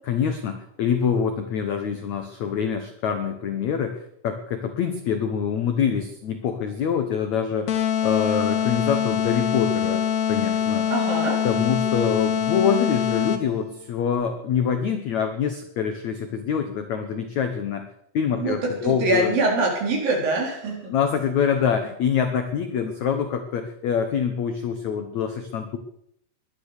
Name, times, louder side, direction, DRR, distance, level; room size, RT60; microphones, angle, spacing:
voice 1, 0.1-7.7 8.0-10.9 11.4-17.9 18.1-19.4 20.9-25.8, left 7 dB, 85° left, 7 dB, 1.6 m, -25 dB
sound 1, 7.7-13.6, left 8 dB, 70° left, 1.7 m, -24 dB
voice 2, 10.9-11.4 18.3-20.9, right 2 dB, 55° right, -1 dB, 5.8 m, -24 dB
21.5 x 9.8 x 6.6 m, 0.72 s
omnidirectional pair, 5.1 m